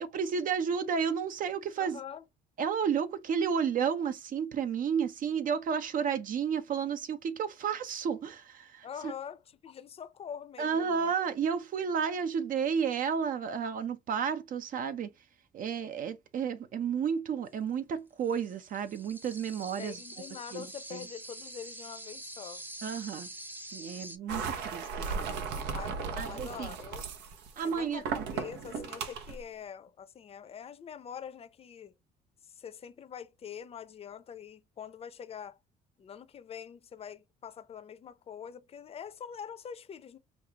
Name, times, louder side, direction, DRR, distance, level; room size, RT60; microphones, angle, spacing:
voice 1, 0.0-2.0 2.6-9.1 10.6-15.1 15.5-20.0 20.5-20.7 20.9-21.0 22.8-23.3 23.7-25.4 26.2-26.7 27.6-28.0, right 7 dB, 55° right, 0.7 m, -32 dB
voice 2, 1.8-2.2 8.8-11.1 19.8-22.6 25.7-27.0 27.6-28.1 28.3-31.9 32.5-35.6 36.0-40.2, left 8 dB, 35° left, 0.6 m, -44 dB
sound 1, 18.2-24.2, right 1 dB, 10° right, 0.7 m, -46 dB
sound 2, 24.3-29.4, right 5 dB, 85° right, 0.9 m, -36 dB
5.3 x 2.4 x 2.8 m
cardioid pair, 110°, 17 cm